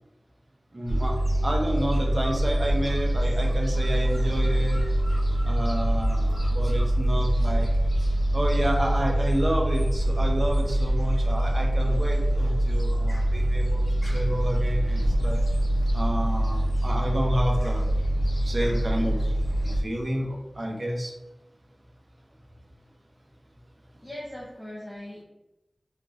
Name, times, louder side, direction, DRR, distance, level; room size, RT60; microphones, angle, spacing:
voice 1, 0.7-1.2 1.4-4.8 5.5-7.7 8.3-15.4 15.9-17.8 18.4-19.2 19.6-21.1, equal, 45° right, 0 dB, 1.0 m, -30 dB
Gull seagull, 0.9-19.8, right 1 dB, 45° left, 1.6 m, -24 dB
sound 1, 4.0-16.3, equal, 15° right, 1.5 m, -44 dB
voice 2, 24.0-25.2, left 1 dB, 15° left, -7 dB, 1.3 m, -39 dB
4.0 x 3.6 x 3.6 m, 1.0 s
wide cardioid pair, 50°, 0 cm